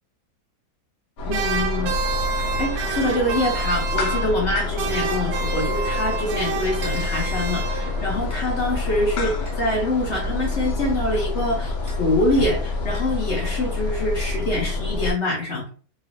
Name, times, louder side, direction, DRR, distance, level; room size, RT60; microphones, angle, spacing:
sound 1, 1.2-15.1, left 3 dB, 75° left, 1.6 m, -27 dB
voice 1, 1.2-1.9 2.4-15.7, left 1 dB, 45° left, -1 dB, 1.0 m, -25 dB
sound 2, 1.3-4.5 4.8-8.2, right 6 dB, 75° right, 1.2 m, -29 dB
sound 3, 6.8-7.2 8.3-8.4 9.5-9.6 10.5-10.7 11.9-12.0 12.9-13.2, equal, 5° right, 0.9 m, -42 dB
3.8 x 2.3 x 3.2 m, 0.40 s
omnidirectional pair, 2.2 m